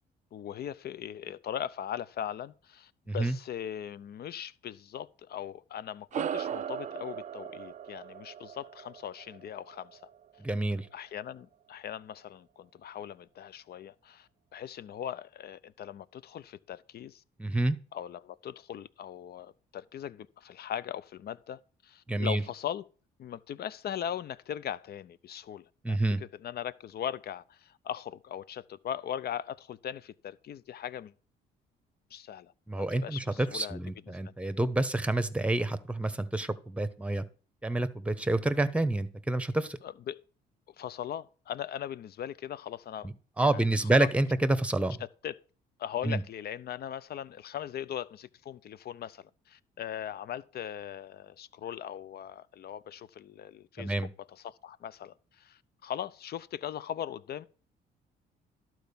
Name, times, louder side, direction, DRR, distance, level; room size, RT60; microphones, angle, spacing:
voice 1, 0.3-10.0 10.9-17.2 17.9-22.8 23.2-26.0 26.4-31.1 32.1-32.5 32.8-33.8 34.2-34.3 39.8-40.2 40.8-43.1 43.4-44.1 45.0-45.4 45.8-53.9 54.4-57.5, left 10 dB, 55° left, 0.6 m, -39 dB
sound 1, 6.1-10.9, right 9 dB, 40° right, 0.4 m, -39 dB
voice 2, 10.4-10.9 17.4-17.8 22.1-22.4 25.8-26.2 32.7-37.2 37.6-39.8 43.4-45.0 46.0-46.2 53.8-54.1, right 2 dB, 5° right, 1.0 m, -28 dB
12.0 x 4.6 x 6.9 m
cardioid pair, 80°, 19 cm